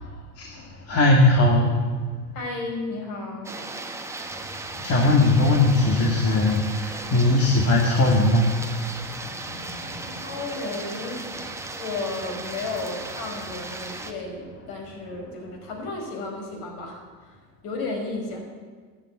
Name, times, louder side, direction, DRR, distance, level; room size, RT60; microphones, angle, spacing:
voice 1, 0.0-1.8 4.7-10.3 11.6-11.8, left 2 dB, 30° left, 0 dB, 2.3 m, -21 dB
voice 2, 2.3-3.5 10.2-11.3 11.8-17.4 17.6-18.5, left 3 dB, 50° left, 2 dB, 5.5 m, -33 dB
sound 1, 3.4-14.1, right 3 dB, 5° right, 1.2 m, -36 dB
13.5 x 10.5 x 9.3 m, 1.5 s
hypercardioid pair, 105°, 48 cm